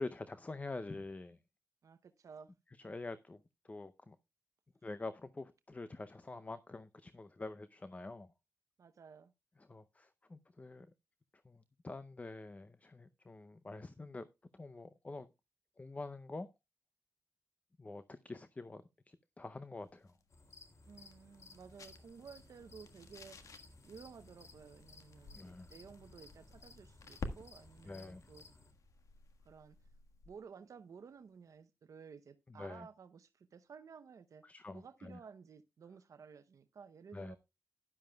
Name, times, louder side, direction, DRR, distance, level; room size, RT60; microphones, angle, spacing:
voice 1, 0.0-1.4 2.8-4.2 4.8-8.3 9.6-10.9 11.4-14.3 14.5-15.3 15.8-16.5 17.8-20.1 25.3-25.7 27.9-28.2 32.5-32.9 34.4-35.2 37.1-37.4, left 2 dB, 25° left, 0.6 m, -46 dB
voice 2, 1.8-2.5 8.8-9.3 20.9-28.5 29.5-29.8 30.3-34.4 34.7-37.4, right 6 dB, 80° right, 0.7 m, -55 dB
sound 1, 19.8-30.5, left 3 dB, 80° left, 1.4 m, -53 dB
sound 2, 20.3-28.7, left 3 dB, 60° left, 2.6 m, -59 dB
12.5 x 11.0 x 2.2 m
wide cardioid pair, 95°, 6 cm